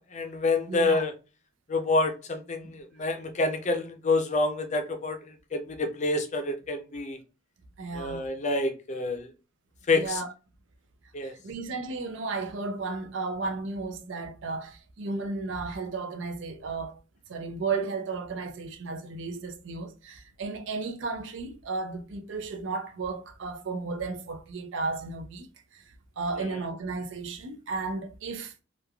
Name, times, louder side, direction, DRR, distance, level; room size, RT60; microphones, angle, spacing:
voice 1, 0.1-1.1 1.7-7.2 7.9-9.3 9.9-10.2 11.1-11.3 26.4-26.6, left 2 dB, 40° left, 0.5 m, -28 dB
voice 2, 0.7-1.0 7.8-8.3 9.9-10.3 11.4-17.0 17.3-25.5 25.7-25.8 26.2-28.6, right 3 dB, 70° right, 0.5 m, -34 dB
3.0 x 2.3 x 2.3 m
head